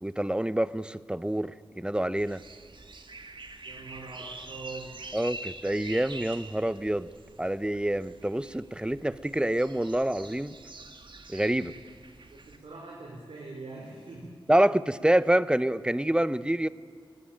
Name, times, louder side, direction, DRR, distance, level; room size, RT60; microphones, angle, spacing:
voice 1, 0.0-2.4 5.1-7.1 7.4-10.5 11.3-11.7 14.5-16.7, right 1 dB, 10° right, 16 dB, 0.7 m, -27 dB
sound 1, 2.2-12.6, right 3 dB, 60° right, 1.9 m, -45 dB
voice 2, 3.6-4.9 12.3-14.4, right 3 dB, 80° right, -2 dB, 4.5 m, -43 dB
20.5 x 20.0 x 9.0 m, 2.1 s
wide cardioid pair, 70°, 9 cm